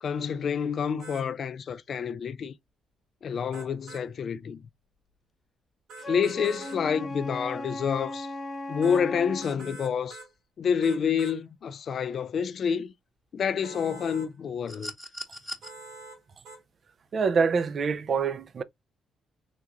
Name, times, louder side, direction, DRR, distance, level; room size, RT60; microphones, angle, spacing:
voice 1, 0.0-2.5 3.2-4.6 6.1-8.3 8.7-10.2 10.6-12.9 13.3-14.9, left 7 dB, 55° left, 0.4 m, -28 dB
sound 1, 1.0-1.3 3.5-4.0 5.9-6.8 8.8-9.0 9.4-10.3 10.8-11.4 13.6-14.3 15.6-16.2 16.4-16.6, right 3 dB, 85° right, 1.8 m, -45 dB
Wind instrument woodwind instrument, 6.0-9.5, left 1 dB, 35° left, 0.8 m, -37 dB
sound 2, 14.7-15.7 17.2-17.3, equal, 5° right, 1.0 m, -39 dB
voice 2, 17.1-18.6, right 5 dB, 50° right, 0.4 m, -25 dB
3.6 x 2.5 x 2.8 m
cardioid pair, 90°, 0 cm